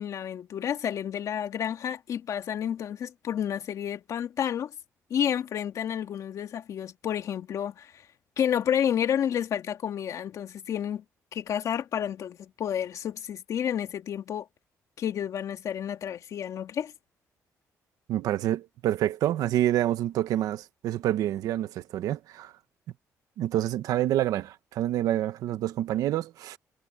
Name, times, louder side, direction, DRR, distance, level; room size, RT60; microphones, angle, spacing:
voice 1, 0.0-4.7 5.1-7.9 8.4-11.0 11.3-14.5 15.0-16.9, left 9 dB, 65° left, 2.1 m, -30 dB
voice 2, 18.1-22.5 23.4-26.6, right 13 dB, 85° right, 1.1 m, -27 dB
cardioid pair, 100°, 6 cm